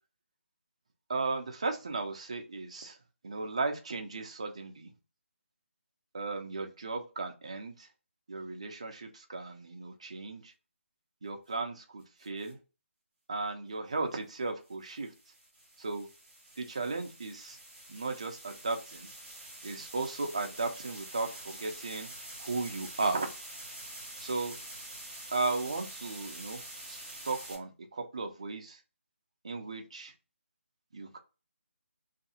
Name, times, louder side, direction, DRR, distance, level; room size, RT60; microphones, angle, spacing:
voice 1, 1.1-3.0 3.2-4.9 6.1-7.9 8.3-10.5 11.2-12.6 13.3-15.1 15.8-16.1 16.6-17.6 17.9-19.1 19.6-22.1 22.4-23.3 24.2-24.6 25.3-26.6 26.9-28.8 29.4-30.1 30.9-31.2, right 3 dB, 25° right, 5 dB, 0.3 m, -35 dB
sound 1, 12.2-12.5 14.7-27.5, right 1 dB, 10° right, 0.8 m, -47 dB
2.6 x 2.4 x 2.7 m, 0.31 s
hypercardioid pair, 175°, 8 cm